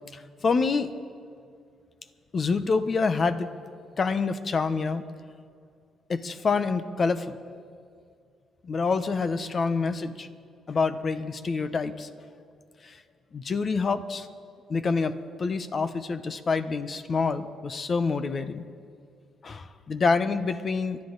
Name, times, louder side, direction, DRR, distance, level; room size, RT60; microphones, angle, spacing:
voice 1, 0.1-0.9 2.3-3.5 4.0-5.0 6.1-7.4 8.6-10.3 10.7-12.1 12.8-13.0 13.3-14.3 14.7-18.6 19.4-21.0, left 4 dB, 40° left, 11 dB, 0.9 m, -27 dB
29.5 x 12.0 x 4.0 m, 2.3 s
cardioid pair, 90°, 0 cm